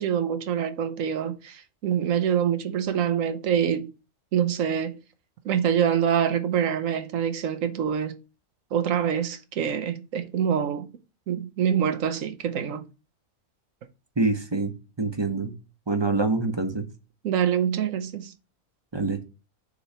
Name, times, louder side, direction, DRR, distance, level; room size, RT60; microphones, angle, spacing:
voice 1, 0.0-3.9 4.3-5.0 5.4-8.2 8.7-10.9 11.3-12.9 17.2-18.3, right 8 dB, 85° right, 1.2 m, -25 dB
voice 2, 14.2-15.5 15.9-16.9 18.9-19.2, right 3 dB, 25° right, 0.7 m, -26 dB
6.8 x 3.1 x 5.4 m
omnidirectional pair, 1.3 m